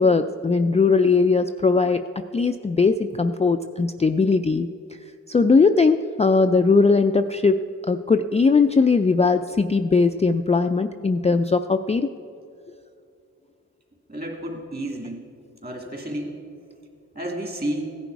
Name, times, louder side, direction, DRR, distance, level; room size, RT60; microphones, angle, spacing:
voice 1, 0.0-4.7 5.3-12.1, left 4 dB, 20° left, 7 dB, 0.4 m, -19 dB
voice 2, 14.1-15.2 15.6-16.4 17.1-18.0, right 1 dB, 30° right, 1 dB, 2.7 m, -31 dB
16.5 x 10.5 x 4.7 m, 2.5 s
wide cardioid pair, 80°, 30 cm